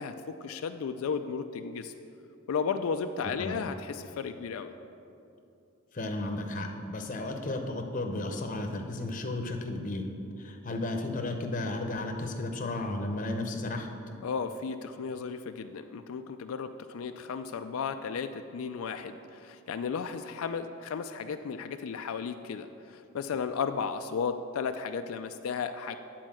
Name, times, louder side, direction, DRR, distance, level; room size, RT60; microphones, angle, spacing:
voice 1, 0.0-1.9 2.5-4.7 14.2-26.0, left 6 dB, 90° left, 8 dB, 0.4 m, -34 dB
voice 2, 5.9-10.1 10.4-13.9, left 2 dB, 40° left, 4 dB, 0.8 m, -33 dB
9.3 x 4.5 x 7.4 m, 2.7 s
head